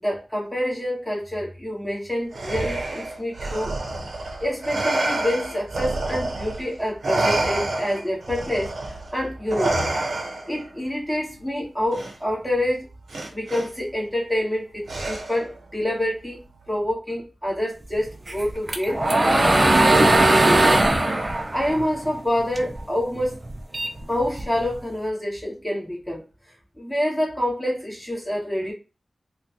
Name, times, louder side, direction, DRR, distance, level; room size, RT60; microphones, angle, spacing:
voice 1, 0.0-3.7 4.4-9.9 10.5-12.9 13.3-16.4 16.7-20.8 21.5-23.4 24.1-26.2 26.8-28.7, left 1 dB, 5° left, 1.8 m, -27 dB
Respiratory sounds, 2.3-6.7 7.0-10.7 11.9-12.1 13.1-13.7 14.9-15.5, right 2 dB, 85° right, 0.9 m, -28 dB
sound 1, 18.3-22.8 23.2-24.7, right 2 dB, 35° right, 0.5 m, -19 dB
3.7 x 2.3 x 2.8 m
wide cardioid pair, 80°, 0 cm